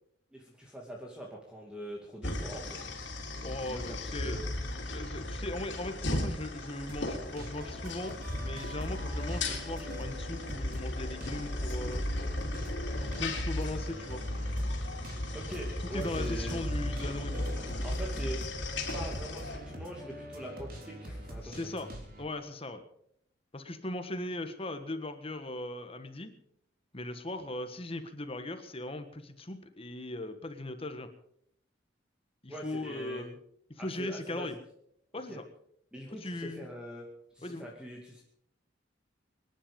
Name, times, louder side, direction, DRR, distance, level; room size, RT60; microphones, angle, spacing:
voice 1, 0.3-3.0 3.7-4.4 15.3-16.6 17.8-18.4 18.9-21.7 32.5-33.2 33.8-34.6 35.3-35.4 35.9-37.1 37.3-38.2, right 1 dB, 5° right, -2 dB, 2.4 m, -43 dB
sound 1, 2.2-19.6, left 1 dB, 70° left, 3.7 m, -35 dB
voice 2, 3.4-4.4 4.8-12.0 13.0-14.2 15.9-17.6 21.4-21.9 22.2-22.8 23.5-26.3 26.9-31.1 32.4-33.4 33.8-34.5 35.1-35.4 36.1-36.6 37.4-37.7, left 1 dB, 30° left, 9 dB, 1.5 m, -39 dB
sound 2, 6.9-22.2, equal, 50° right, 3.7 m, -45 dB
24.5 x 10.5 x 5.3 m, 0.70 s
head